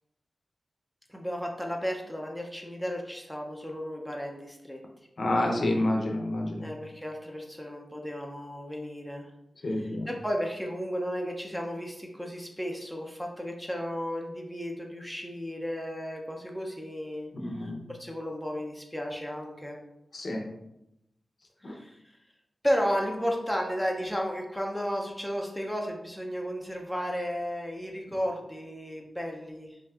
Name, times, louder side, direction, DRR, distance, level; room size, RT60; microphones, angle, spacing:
voice 1, 1.1-4.8 6.6-9.3 9.7-17.3 17.6-19.8 21.6-22.0 22.6-29.8, equal, ahead, 0 dB, 0.5 m, -33 dB
voice 2, 5.2-6.7 9.6-10.1 17.3-17.8 20.1-20.4 21.6-21.7, left 1 dB, 50° left, 1 dB, 0.6 m, -28 dB
5.5 x 2.6 x 2.4 m, 0.85 s
wide cardioid pair, 140°, 0 cm